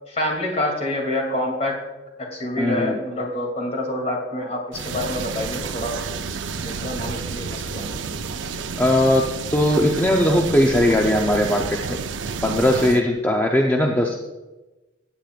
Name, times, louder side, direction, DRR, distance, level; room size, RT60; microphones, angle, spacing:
voice 1, 0.1-1.8 2.2-6.0 6.6-8.0, left 1 dB, 35° left, 1 dB, 2.7 m, -27 dB
voice 2, 2.6-3.0 8.8-12.0 12.4-14.2, left 1 dB, 10° left, 0 dB, 0.7 m, -19 dB
sound 1, 4.7-13.0, right 5 dB, 75° right, 0.6 m, -30 dB
16.0 x 9.4 x 2.5 m, 1.1 s
head